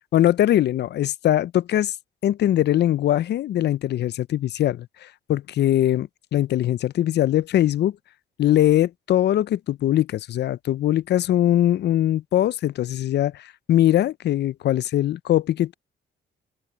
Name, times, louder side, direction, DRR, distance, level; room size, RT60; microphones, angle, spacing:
voice 1, 0.1-1.9 2.2-7.9 8.4-15.7, left 12 dB, 60° left, 0.5 m, -21 dB
open air
cardioid pair, 90°, 20 cm